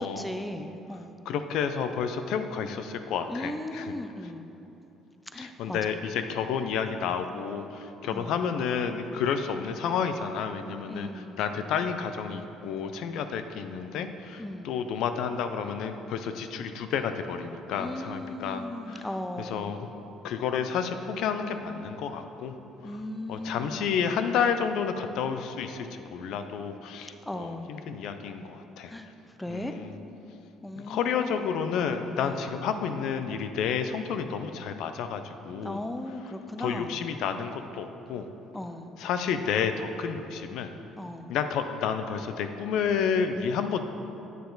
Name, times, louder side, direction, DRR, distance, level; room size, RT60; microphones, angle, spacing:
voice 1, 0.0-1.2 3.3-4.5 5.3-5.8 8.0-8.3 10.9-11.4 14.4-14.8 17.8-19.6 22.8-23.9 27.3-27.7 28.9-29.1 29.4-29.7 30.6-31.4 32.2-32.5 35.6-36.9 38.5-38.9 41.0-41.3, left 1 dB, 10° left, 7 dB, 0.5 m, -37 dB
voice 2, 1.3-3.9 5.4-19.1 19.4-19.8 20.2-22.5 22.8-23.0 23.3-28.9 29.5-29.9 30.8-35.8 36.6-38.3 39.0-40.7 41.3-43.8, left 7 dB, 75° left, 8 dB, 0.5 m, -30 dB
9.2 x 6.8 x 3.9 m, 2.9 s
cardioid pair, 105°, 0 cm